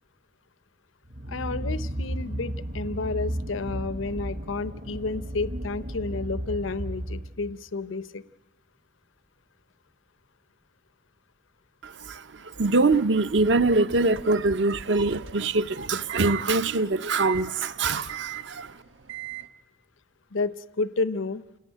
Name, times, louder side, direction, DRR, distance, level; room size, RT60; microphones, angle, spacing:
sound 1, 1.1-7.6, right 1 dB, 40° right, 0.8 m, -34 dB
voice 1, 1.3-8.2 20.3-21.4, left 3 dB, 90° left, 0.7 m, -31 dB
voice 2, 11.8-18.7, right 3 dB, 65° right, 0.7 m, -24 dB
sound 2, 14.0-19.5, right 15 dB, 85° right, 1.2 m, -41 dB
28.0 x 17.5 x 9.2 m
head